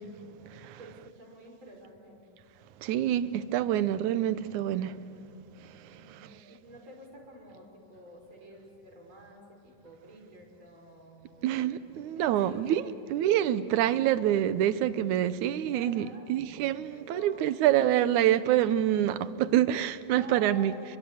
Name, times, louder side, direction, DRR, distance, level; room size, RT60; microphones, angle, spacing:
voice 1, 0.8-2.2 5.9-9.4 9.8-11.8 12.1-12.8 15.7-16.3 16.9-17.9 20.1-20.9, right 2 dB, 40° right, 6.6 m, -49 dB
voice 2, 2.8-4.9 11.4-12.8 13.1-20.7, right 12 dB, 85° right, 2.3 m, -26 dB
29.5 x 23.0 x 7.9 m
omnidirectional pair, 3.4 m